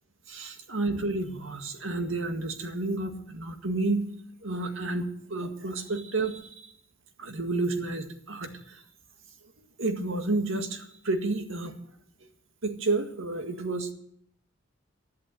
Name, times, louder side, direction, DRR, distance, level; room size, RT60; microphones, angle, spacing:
voice 1, 0.3-4.1 4.4-6.7 7.2-8.8 9.8-11.7 12.6-13.9, right 2 dB, 75° right, 6 dB, 1.8 m, -30 dB
12.5 x 11.5 x 7.7 m, 0.67 s
head